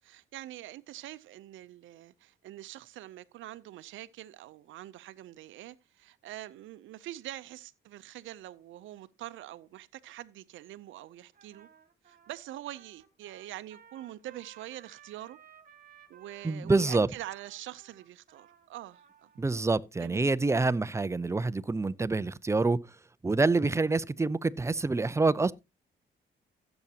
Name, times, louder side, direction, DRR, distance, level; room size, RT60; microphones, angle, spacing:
voice 1, 0.0-11.7 12.1-15.4 16.1-19.3 20.0-20.3, right 14 dB, 75° right, 0.6 m, -45 dB
Trumpet, 11.3-19.6, right 8 dB, 45° right, 1.8 m, -57 dB
voice 2, 16.4-17.1 19.4-23.0 23.2-25.5, right 3 dB, 15° right, 0.5 m, -27 dB
15.5 x 7.1 x 2.8 m
cardioid pair, 90°, 20 cm